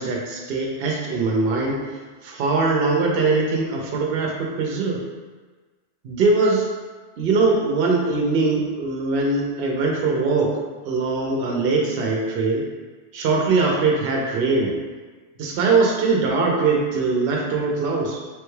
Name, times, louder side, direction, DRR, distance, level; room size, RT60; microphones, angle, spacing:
voice 1, 0.0-1.8 2.2-5.0 6.0-6.7 7.2-10.6 10.8-12.7 13.1-14.8 15.4-18.2, right 3 dB, 65° right, -1 dB, 0.7 m, -21 dB
3.3 x 2.2 x 3.1 m, 1.4 s
omnidirectional pair, 1.2 m